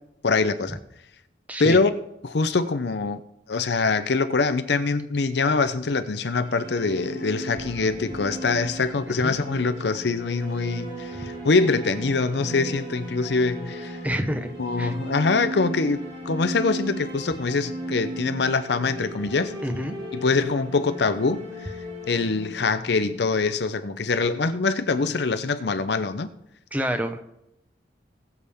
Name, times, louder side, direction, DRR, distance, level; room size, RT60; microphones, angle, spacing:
voice 1, 0.2-0.8 1.6-1.9 2.2-3.2 3.5-14.0 14.6-19.6 20.1-21.7 22.1-26.3, left 4 dB, 65° left, 10 dB, 0.6 m, -24 dB
voice 2, 1.5-1.8 9.1-9.3 14.0-14.5 14.8-14.9 19.6-19.9 26.7-27.2, equal, 10° right, 7 dB, 0.8 m, -28 dB
sound 1, 6.1-24.0, right 1 dB, 30° right, 2.9 m, -36 dB
sound 2, 7.6-10.4, left 1 dB, 35° left, 0.8 m, -49 dB
19.5 x 7.1 x 3.6 m, 0.83 s
head